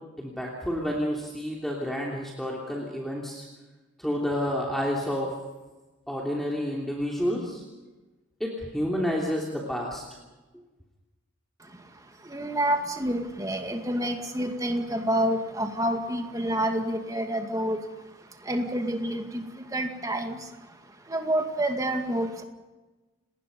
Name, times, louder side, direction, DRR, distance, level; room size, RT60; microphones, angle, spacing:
voice 1, 0.2-3.5 4.0-5.3 6.1-7.6 8.4-10.0, equal, ahead, -3 dB, 3.1 m, -29 dB
voice 2, 12.3-17.8 18.5-19.4 19.7-20.4 21.1-22.4, right 1 dB, 20° right, 4 dB, 2.2 m, -28 dB
29.5 x 20.0 x 5.4 m, 1.2 s
head